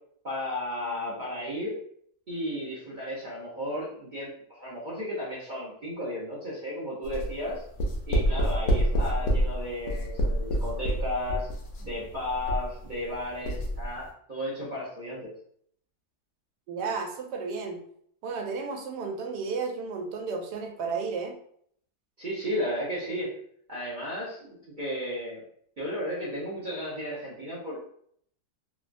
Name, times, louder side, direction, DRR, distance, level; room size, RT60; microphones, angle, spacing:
voice 1, 0.2-1.8 2.3-7.6 8.1-11.5 11.8-15.3 22.2-23.4 23.7-25.4 25.8-27.9, left 1 dB, 50° right, -9 dB, 0.5 m, -34 dB
sound 1, 7.0-13.1 13.4-13.9, equal, 70° left, 0.7 m, -27 dB
voice 2, 16.7-17.8 18.2-21.4, right 4 dB, 85° right, 3 dB, 1.2 m, -33 dB
2.9 x 2.2 x 2.5 m, 0.65 s
omnidirectional pair, 1.8 m